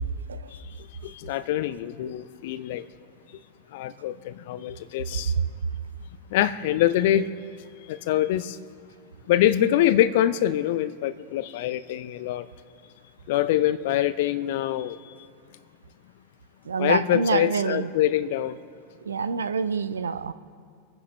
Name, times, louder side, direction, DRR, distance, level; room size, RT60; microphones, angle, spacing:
voice 1, 1.0-2.9 3.7-5.3 6.3-7.3 7.9-8.6 9.3-12.5 13.3-15.0 16.8-18.6, left 12 dB, 50° left, 16 dB, 0.6 m, -24 dB
voice 2, 16.6-17.9 19.0-20.3, right 5 dB, 70° right, 14 dB, 0.7 m, -27 dB
26.0 x 10.0 x 3.4 m, 2.3 s
figure-of-eight pair, 90°, 0 cm